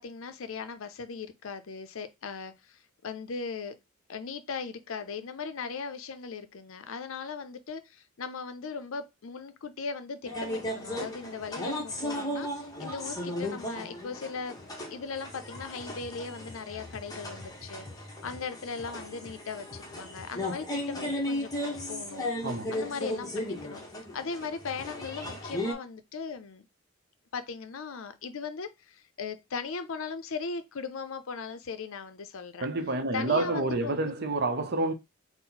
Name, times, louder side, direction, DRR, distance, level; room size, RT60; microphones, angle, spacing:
voice 1, 0.0-3.8 4.1-14.6 14.9-17.9 18.2-21.5 21.9-22.3 22.7-23.8 24.1-26.6 27.3-32.7 33.1-34.1, left 5 dB, 70° left, 0.5 m, -38 dB
sound 1, 10.3-25.7, left 1 dB, 15° left, 0.8 m, -36 dB
voice 2, 22.4-22.7 32.6-34.9, right 2 dB, 45° right, 0.6 m, -28 dB
4.3 x 2.0 x 3.8 m
head